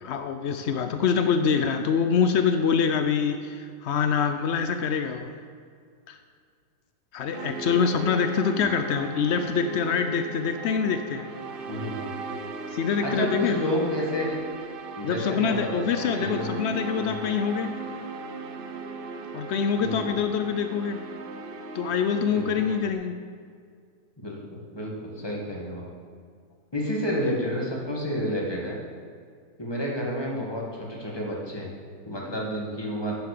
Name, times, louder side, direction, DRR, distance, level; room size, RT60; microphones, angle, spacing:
voice 1, 0.0-5.3 6.1-6.2 7.1-11.3 12.7-13.5 15.0-17.7 19.3-21.0 21.7-23.2, left 6 dB, 85° left, 7 dB, 0.6 m, -25 dB
sound 1, 7.3-22.9, right 4 dB, 90° right, 0.4 m, -37 dB
voice 2, 11.7-12.1 13.0-14.4 15.0-16.5 17.0-17.2 19.8-20.1 22.3-22.7 24.2-25.9 26.7-28.8 29.6-31.7 32.1-33.2, equal, 15° left, -3 dB, 1.9 m, -30 dB
9.4 x 7.5 x 6.7 m, 2.1 s
omnidirectional pair, 1.9 m